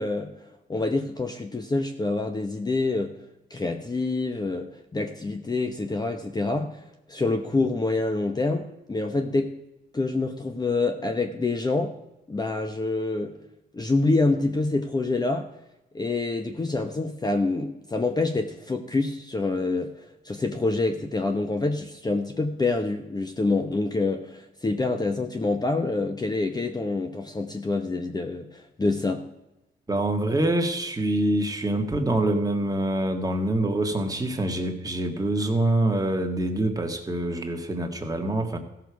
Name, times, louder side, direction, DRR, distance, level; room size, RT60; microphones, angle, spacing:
voice 1, 0.0-3.1 3.5-6.8 7.1-9.5 9.9-11.9 12.3-13.3 13.7-15.5 15.9-29.2, left 3 dB, 20° left, 5 dB, 0.9 m, -26 dB
voice 2, 29.9-38.6, right 1 dB, 20° right, 3 dB, 1.7 m, -25 dB
15.0 x 6.7 x 4.6 m, 0.94 s
cardioid pair, 90°, 20 cm